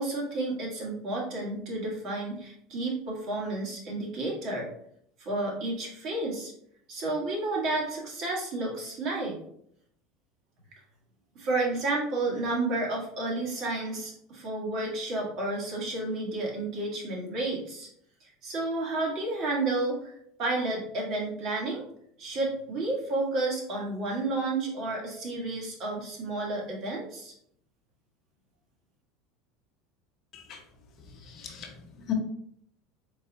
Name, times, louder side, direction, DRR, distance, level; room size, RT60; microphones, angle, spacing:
voice 1, 0.0-4.7 5.2-6.5 6.9-9.4 11.3-17.9 18.2-21.8 22.2-27.3, right 2 dB, 50° right, -3 dB, 1.5 m, -31 dB
voice 2, 31.0-32.1, left 10 dB, 40° left, 2 dB, 0.9 m, -38 dB
3.9 x 3.9 x 2.7 m, 0.70 s
supercardioid pair, 130°, 0 cm